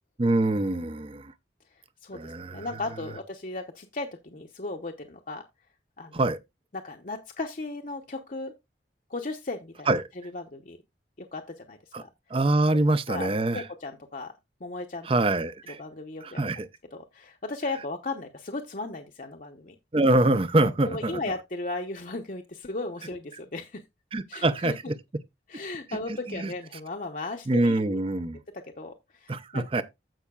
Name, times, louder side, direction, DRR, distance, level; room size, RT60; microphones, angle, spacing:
voice 1, 0.2-1.3 2.1-2.7 6.1-6.4 9.9-10.1 11.9-12.0 12.3-13.6 15.0-15.8 16.2-16.7 19.9-21.2 24.1-24.9 26.3-26.5 27.5-28.4 29.3-29.8, right 2 dB, 30° right, 0.5 m, -25 dB
voice 2, 2.0-5.5 6.0-6.3 6.7-8.5 9.1-9.9 10.3-10.8 11.2-12.1 13.1-14.3 14.6-15.1 15.8-16.4 16.9-19.7 20.6-23.8 24.3-24.7 25.5-28.0 28.5-29.7, left 2 dB, 45° left, 0.8 m, -36 dB
15.5 x 5.6 x 2.3 m
head